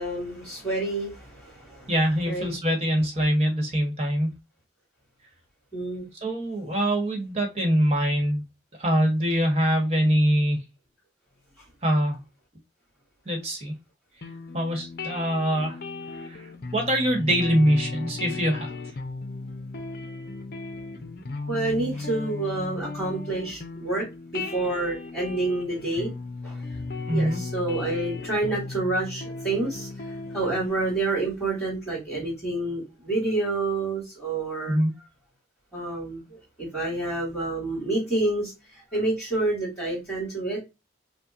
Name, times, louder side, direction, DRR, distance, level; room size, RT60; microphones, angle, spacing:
voice 1, 0.0-1.9 2.3-2.5 5.7-6.0 21.5-24.0 24.3-26.1 26.4-26.8 27.1-34.8 35.7-40.6, right 2 dB, ahead, 2.4 m, -28 dB
voice 2, 1.9-4.3 6.2-8.4 8.8-10.6 11.8-12.2 13.2-13.7 14.5-15.8 16.1-18.8 27.1-27.4 34.7-34.9, equal, 35° right, 1.3 m, -24 dB
sound 1, 14.2-30.7, left 3 dB, 50° left, 0.6 m, -36 dB
5.7 x 2.2 x 2.5 m
head